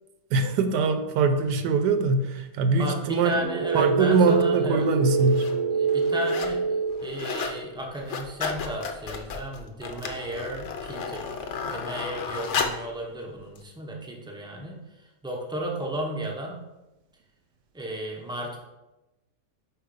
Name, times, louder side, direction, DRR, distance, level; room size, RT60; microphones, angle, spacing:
voice 1, 0.3-3.4 3.7-5.4, right 4 dB, 80° right, 8 dB, 1.2 m, -23 dB
voice 2, 2.7-4.9 5.7-11.3 11.7-16.6 17.7-18.6, right 1 dB, 5° right, -1 dB, 0.3 m, -34 dB
sound 1, 3.4-7.6, right 5 dB, 65° right, 0.8 m, -26 dB
sound 2, 4.3-4.4 5.1-5.5 5.9-6.6 6.9-7.6 7.9-12.9 13.6-13.7, left 5 dB, 60° left, 0.7 m, -33 dB
4.7 x 4.5 x 5.2 m, 1.0 s
omnidirectional pair, 1.8 m